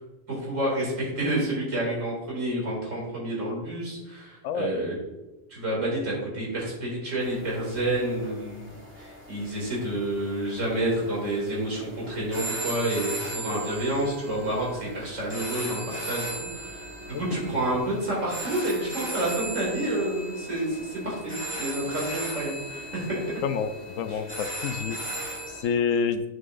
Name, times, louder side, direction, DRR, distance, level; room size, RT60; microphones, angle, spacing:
voice 1, 0.3-4.9 5.5-23.4 24.1-24.2, right 1 dB, 65° right, -4 dB, 3.0 m, -29 dB
sound 1, 7.2-25.6, right 1 dB, 10° right, 1.7 m, -37 dB
voice 2, 23.4-25.0 25.5-26.2, left 6 dB, 75° left, 10 dB, 0.9 m, -28 dB
9.0 x 6.3 x 2.5 m, 1.0 s
omnidirectional pair, 1.4 m